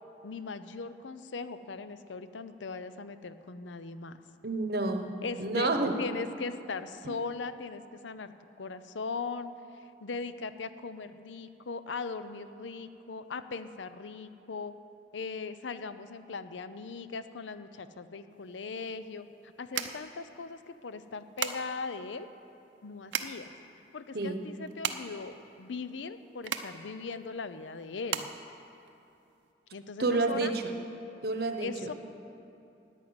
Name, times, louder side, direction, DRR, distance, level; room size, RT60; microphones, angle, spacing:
voice 1, 0.2-4.2 5.2-5.7 6.0-8.3 8.6-14.7 15.1-22.3 22.8-23.5 23.9-28.3 29.7-30.5 31.6-31.9, left 4 dB, 90° left, 12 dB, 0.6 m, -39 dB
voice 2, 4.4-5.1 5.4-5.9 7.1-7.2 24.1-24.5 30.0-30.7 31.2-31.7, right 3 dB, 55° right, 6 dB, 0.9 m, -29 dB
sound 1, 18.3-29.5, right 8 dB, 90° right, 0.6 m, -39 dB
11.0 x 9.3 x 8.9 m, 2.7 s
head